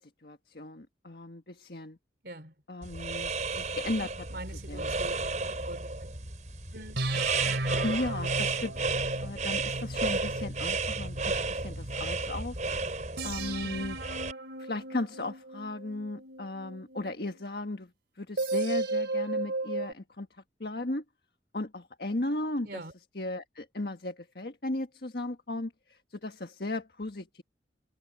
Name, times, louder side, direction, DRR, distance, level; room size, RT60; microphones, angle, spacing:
voice 1, 0.0-2.0 2.7-4.3 4.7-4.9 7.8-8.7 9.2-12.6 13.2-14.0 14.6-17.9 18.2-20.3 20.6-21.0 21.5-22.8 23.2-27.4, left 2 dB, 60° left, 1.6 m, -36 dB
voice 2, 2.2-2.5 4.3-5.2 5.6-5.9 6.7-7.8 13.6-14.0 22.6-23.0, right 1 dB, 60° right, 3.8 m, -43 dB
sound 1, 2.8-14.3, right 3 dB, 45° right, 5.1 m, -33 dB
sound 2, 4.3-6.3 7.0-12.2 13.2-17.4 18.4-19.9, right 2 dB, 80° right, 3.1 m, -36 dB
head